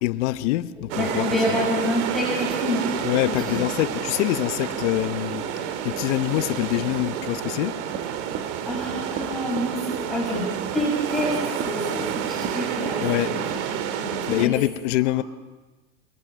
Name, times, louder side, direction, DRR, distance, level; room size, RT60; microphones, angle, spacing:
voice 1, 0.0-1.6 3.0-7.8 13.0-13.4 14.3-15.2, left 16 dB, 65° left, 1.1 m, -25 dB
voice 2, 0.9-2.9 3.3-3.6 8.6-13.4 14.0-14.5, equal, ahead, 6.2 m, -27 dB
sound 1, 0.9-14.5, right 8 dB, 60° right, 2.1 m, -29 dB
Run, 7.9-12.6 12.9-13.1 13.4-13.8, right 10 dB, 30° right, 1.1 m, -35 dB
28.5 x 21.0 x 6.3 m
supercardioid pair, 150°, 38 cm